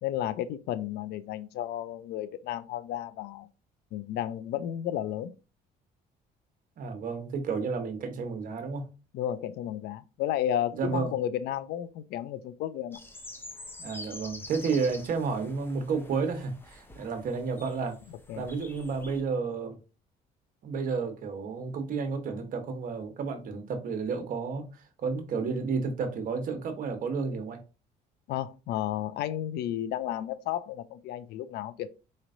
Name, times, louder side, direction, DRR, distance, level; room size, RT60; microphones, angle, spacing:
voice 1, 0.0-3.5 3.9-5.3 9.1-13.0 18.3-18.5 28.3-31.9, left 11 dB, 75° left, 0.4 m, -32 dB
voice 2, 6.8-8.9 10.7-11.1 13.8-18.0 18.3-19.8 20.6-27.6, right 5 dB, 55° right, 1.0 m, -31 dB
sound 1, 12.9-19.2, left 2 dB, 15° left, 0.7 m, -47 dB
4.1 x 3.1 x 2.5 m
cardioid pair, 110°, 17 cm